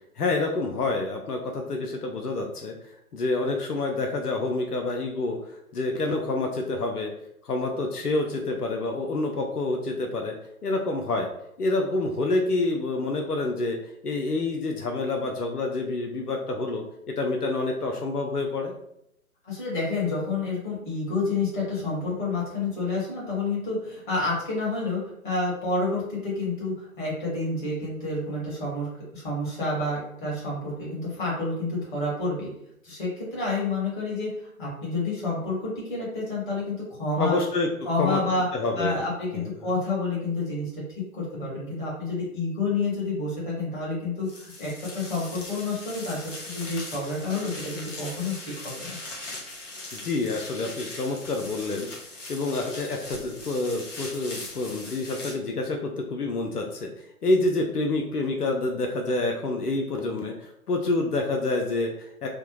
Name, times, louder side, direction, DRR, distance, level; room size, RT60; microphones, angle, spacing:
voice 1, 0.2-2.7 3.1-7.1 7.4-10.3 10.6-11.3 11.6-13.8 14.0-18.7 37.2-37.7 38.0-38.2 38.5-39.0 39.3-39.5 49.9-51.9 52.3-56.9 57.2-62.3, left 2 dB, 90° left, 3 dB, 0.6 m, -27 dB
voice 2, 19.4-32.5 32.8-37.4 37.8-38.5 38.8-40.8 41.1-48.3 48.6-48.9, left 3 dB, 35° left, -5 dB, 1.5 m, -29 dB
sound 1, 44.3-55.3, left 2 dB, 55° left, 1.1 m, -40 dB
3.3 x 2.0 x 3.0 m, 0.75 s
figure-of-eight pair, 130°, 45 cm